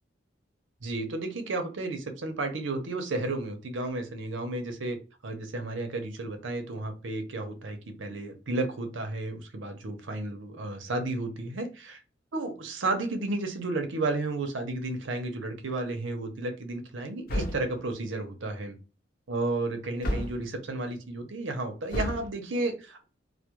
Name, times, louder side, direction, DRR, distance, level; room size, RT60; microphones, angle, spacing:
voice 1, 0.8-5.0 5.2-12.0 12.3-18.8 19.3-23.0, right 2 dB, 80° right, 6 dB, 0.6 m, -32 dB
sound 1, 17.3-17.8 20.0-20.5 21.9-22.3, left 1 dB, 50° left, 0.5 m, -31 dB
2.2 x 2.1 x 2.9 m, 0.33 s
head